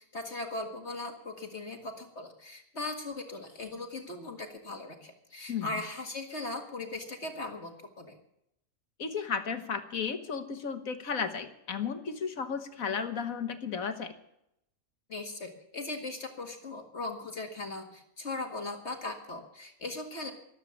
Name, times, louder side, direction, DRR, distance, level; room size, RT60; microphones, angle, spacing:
voice 1, 0.0-8.2 15.1-20.3, left 2 dB, 45° left, 4 dB, 2.1 m, -39 dB
voice 2, 5.5-5.8 9.0-14.1, left 6 dB, 65° left, 8 dB, 1.7 m, -34 dB
14.0 x 12.5 x 7.1 m, 0.77 s
omnidirectional pair, 1.6 m